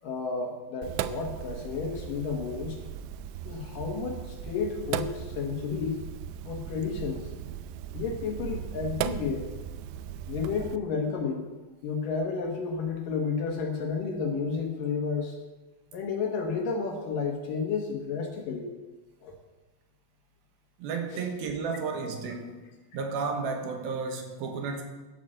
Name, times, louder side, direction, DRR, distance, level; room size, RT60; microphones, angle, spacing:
voice 1, 0.0-2.8 3.5-6.0 6.5-7.3 7.9-9.5 10.3-11.5 11.8-15.4 15.9-18.7 19.2-19.3 21.1-21.2, left 5 dB, 65° left, 2 dB, 2.6 m, -31 dB
Sink (filling or washing), 0.8-10.8, right 10 dB, 85° right, 2.8 m, -37 dB
voice 2, 20.8-22.5 22.9-24.8, right 4 dB, 70° right, 4 dB, 2.8 m, -32 dB
12.5 x 8.3 x 7.8 m, 1.2 s
omnidirectional pair, 4.9 m